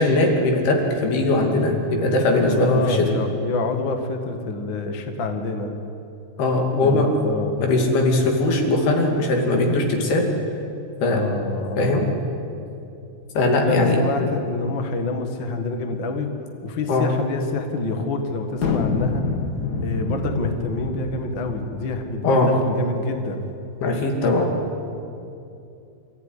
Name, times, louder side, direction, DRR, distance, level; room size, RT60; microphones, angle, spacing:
voice 1, 0.0-3.1 6.4-7.2 7.6-10.3 11.0-11.3 11.8-12.1 13.4-14.3 16.9-17.1 22.2-22.5 23.8-24.5, left 2 dB, 75° left, 2 dB, 4.6 m, -20 dB
voice 2, 2.4-5.7 6.8-7.6 11.1-12.1 13.6-16.3 16.6-19.2 19.8-23.5, left 3 dB, 40° left, 5 dB, 1.9 m, -27 dB
sound 1, 18.6-22.2, left 4 dB, 90° left, 0.8 m, -27 dB
28.0 x 15.0 x 10.0 m, 2.7 s
omnidirectional pair, 4.6 m